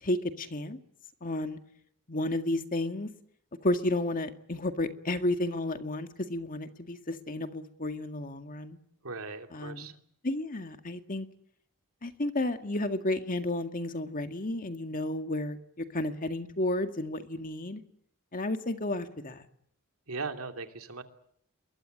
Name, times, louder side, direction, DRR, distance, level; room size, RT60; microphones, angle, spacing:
voice 1, 0.0-0.8 1.2-1.6 2.1-3.1 3.6-8.8 9.5-9.9 10.2-11.3 12.0-17.8 18.3-19.4, left 1 dB, 40° left, 7 dB, 2.0 m, -32 dB
voice 2, 9.0-10.0 20.1-21.0, right 3 dB, 70° right, 6 dB, 2.8 m, -38 dB
28.0 x 22.5 x 7.7 m, 0.69 s
head